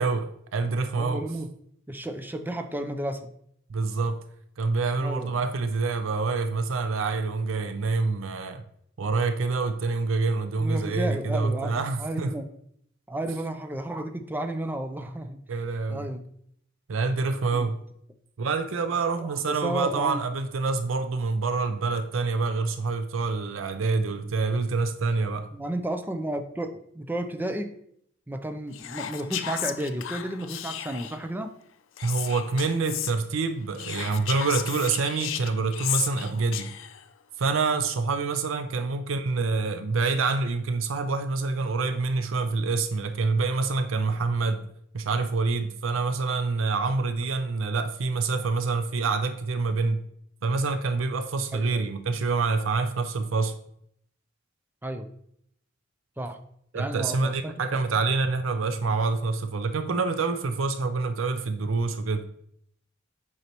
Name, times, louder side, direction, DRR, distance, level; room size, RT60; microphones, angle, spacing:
voice 1, 0.0-1.2 3.7-4.2 4.6-8.6 9.0-12.3 15.5-16.1 16.9-17.8 18.4-25.5 32.0-36.7 37.4-44.7 44.9-50.0 50.4-53.6 56.7-62.3, right 4 dB, 85° right, 0.5 m, -26 dB
voice 2, 0.9-1.5 1.9-3.3 5.0-5.3 10.6-12.5 13.1-15.4 15.9-16.3 17.5-17.7 19.2-20.2 25.5-27.7 28.3-31.5 51.5-51.9 54.8-55.1 56.2-56.4 56.7-57.5, right 1 dB, 10° right, 0.5 m, -32 dB
Whispering, 28.7-31.2 32.0-33.1 33.7-37.0, left 11 dB, 80° left, 0.5 m, -34 dB
8.0 x 5.5 x 3.0 m
head